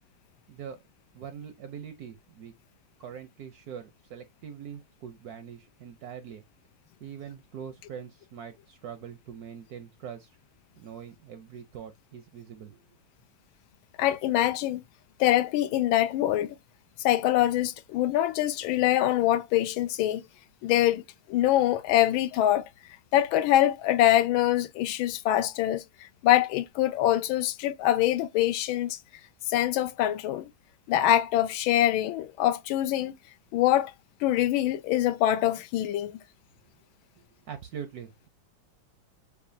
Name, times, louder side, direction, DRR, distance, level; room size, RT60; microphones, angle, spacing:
voice 1, 0.5-0.8 1.1-2.5 3.0-6.4 7.0-10.3 10.8-12.8 37.5-38.3, right 8 dB, 70° right, 0.9 m, -43 dB
voice 2, 14.0-14.8 15.2-16.5 17.0-20.2 20.6-21.0 21.3-22.7 23.1-25.8 26.2-29.0 29.5-30.5 30.9-33.1 33.5-33.9 34.2-36.1, left 13 dB, 85° left, 1.4 m, -24 dB
7.0 x 2.4 x 2.6 m
omnidirectional pair, 2.2 m